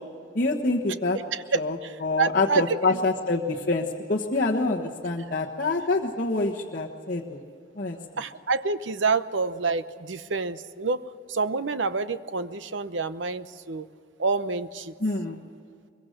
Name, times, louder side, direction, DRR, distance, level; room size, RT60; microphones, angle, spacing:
voice 1, 0.3-1.2 1.5-1.8 2.0-7.4 7.8-8.0 15.0-15.4, left 3 dB, 50° left, -3 dB, 1.3 m, -26 dB
voice 2, 1.3-3.0 8.2-11.0 11.3-13.9 14.2-14.9, right 4 dB, 90° right, 13 dB, 0.9 m, -28 dB
23.5 x 22.5 x 6.6 m, 2.3 s
head